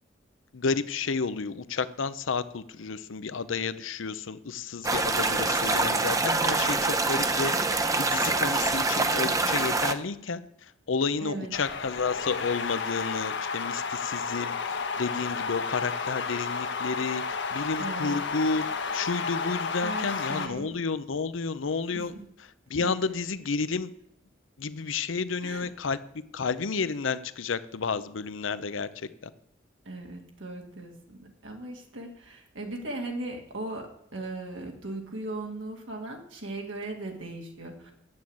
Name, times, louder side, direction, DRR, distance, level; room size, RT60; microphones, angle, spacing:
voice 1, 0.5-10.4 10.9-18.6 18.9-22.1 22.7-23.9 24.6-26.0 26.3-29.1, left 4 dB, 90° left, 14 dB, 0.7 m, -31 dB
sound 1, 4.8-9.9, right 3 dB, 20° right, 0.7 m, -25 dB
voice 2, 11.2-11.5 17.8-18.2 19.8-20.7 21.9-22.2 22.8-22.9 25.4-25.7 29.9-37.9, right 2 dB, 80° right, 1 dB, 1.9 m, -38 dB
sound 2, 11.5-20.5, left 5 dB, 65° left, 1.3 m, -32 dB
9.5 x 7.9 x 8.5 m, 0.74 s
head